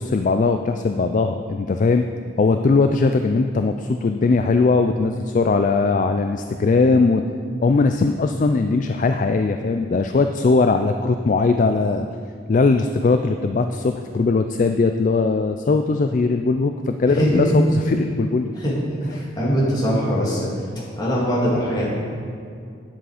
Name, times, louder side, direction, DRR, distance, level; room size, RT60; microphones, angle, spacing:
voice 1, 0.0-2.1 2.4-7.2 7.6-12.1 12.5-18.5, left 3 dB, 40° left, 7 dB, 0.3 m, -19 dB
voice 2, 17.1-17.6 18.6-20.5 21.0-21.9, equal, 20° left, -6 dB, 2.6 m, -21 dB
10.0 x 7.8 x 4.9 m, 2.4 s
head